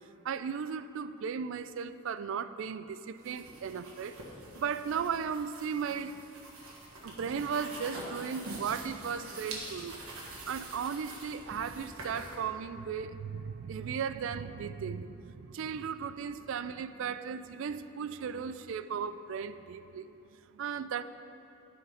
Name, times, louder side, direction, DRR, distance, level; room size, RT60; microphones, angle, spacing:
voice 1, 0.2-4.2 4.5-6.2 7.0-10.0 10.5-21.0, right 6 dB, 60° right, 13 dB, 0.3 m, -36 dB
sound 1, 3.1-12.4, right 2 dB, 85° right, 1.6 m, -45 dB
11.5 x 5.0 x 5.1 m, 2.7 s
head